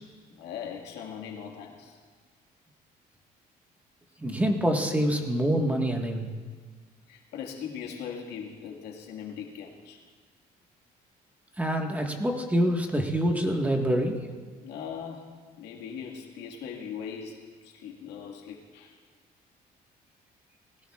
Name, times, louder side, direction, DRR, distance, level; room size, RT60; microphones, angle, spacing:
voice 1, 0.3-2.0 7.1-10.0 14.6-19.0, left 7 dB, 90° left, 0 dB, 1.9 m, -40 dB
voice 2, 4.2-6.3 11.6-14.2, equal, 10° right, 2 dB, 1.6 m, -26 dB
20.0 x 16.5 x 2.4 m, 1.5 s
cardioid pair, 110°, 17 cm